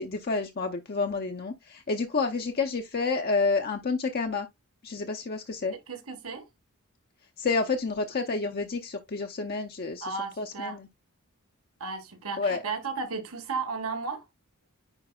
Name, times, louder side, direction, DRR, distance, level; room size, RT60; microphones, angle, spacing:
voice 1, 0.0-4.5 4.8-5.7 7.4-10.8 12.4-12.6, left 4 dB, 45° left, 0.6 m, -29 dB
voice 2, 5.9-6.5 10.0-10.8 11.8-14.3, right 4 dB, 80° right, 1.6 m, -34 dB
9.8 x 4.5 x 2.3 m
head